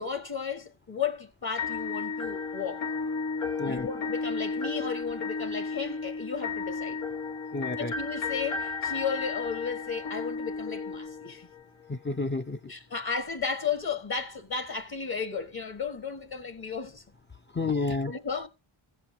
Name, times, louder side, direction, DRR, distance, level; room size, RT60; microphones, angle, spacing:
voice 1, 0.0-2.8 3.6-7.0 7.8-11.5 12.7-17.0 18.0-18.5, left 6 dB, 45° left, 1.5 m, -34 dB
sound 1, 1.6-11.6, left 4 dB, 80° left, 1.4 m, -33 dB
voice 2, 7.5-7.9 11.9-12.7 17.5-18.1, left 3 dB, 25° left, 0.6 m, -30 dB
15.0 x 7.6 x 2.7 m
cardioid pair, 50°, 50 cm